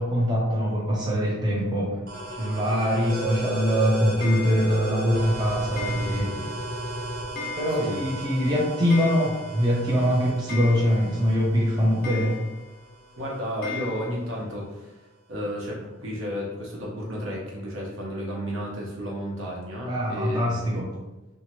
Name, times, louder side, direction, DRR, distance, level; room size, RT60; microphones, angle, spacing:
voice 1, 0.0-2.0 2.4-6.4 7.6-12.4 19.9-20.9, equal, 20° right, -4 dB, 0.4 m, -23 dB
sound 1, 2.1-13.5, right 1 dB, 45° right, 0.8 m, -34 dB
Clock, 4.2-4.9 5.8-6.5 6.8-6.9 7.4-8.1 8.4-8.5 8.7-9.7 10.0-10.1 10.5-11.3 12.0-12.8 13.6-14.1, left 5 dB, 45° left, 0.4 m, -37 dB
voice 2, 13.2-15.0 15.3-20.6, equal, 70° right, -3 dB, 0.9 m, -32 dB
2.8 x 2.4 x 2.9 m, 1.0 s
head